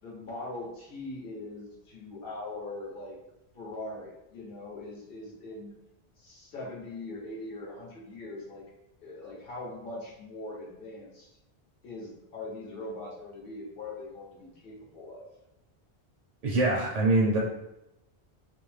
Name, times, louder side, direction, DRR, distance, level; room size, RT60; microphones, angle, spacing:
voice 1, 0.0-3.2 3.5-5.7 6.2-8.6 9.0-11.3 11.8-15.3, left 2 dB, 60° left, -4 dB, 1.0 m, -41 dB
voice 2, 16.4-17.4, right 2 dB, 50° right, -4 dB, 0.5 m, -24 dB
2.6 x 2.0 x 3.2 m, 0.88 s
omnidirectional pair, 1.1 m